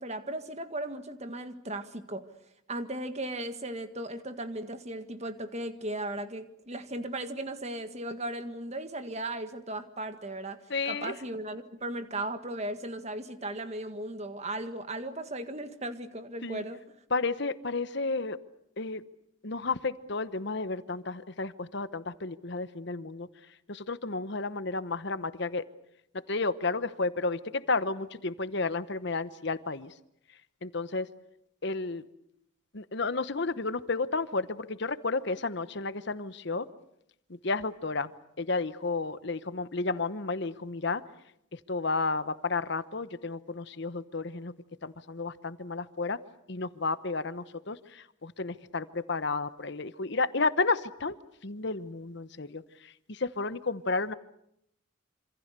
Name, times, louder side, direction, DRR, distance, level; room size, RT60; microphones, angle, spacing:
voice 1, 0.0-2.2 2.7-10.6 10.8-16.8, right 1 dB, 35° right, 9 dB, 1.8 m, -36 dB
voice 2, 10.7-11.1 16.4-16.6 17.1-18.4 18.8-19.0 19.4-23.3 23.7-25.6 26.3-29.9 30.6-31.1 31.6-32.0 32.7-36.7 37.4-38.1 38.4-41.0 41.5-44.5 44.8-46.2 46.5-51.2 51.4-54.1, left 3 dB, 55° left, 13 dB, 1.0 m, -32 dB
27.0 x 26.0 x 6.8 m, 0.75 s
head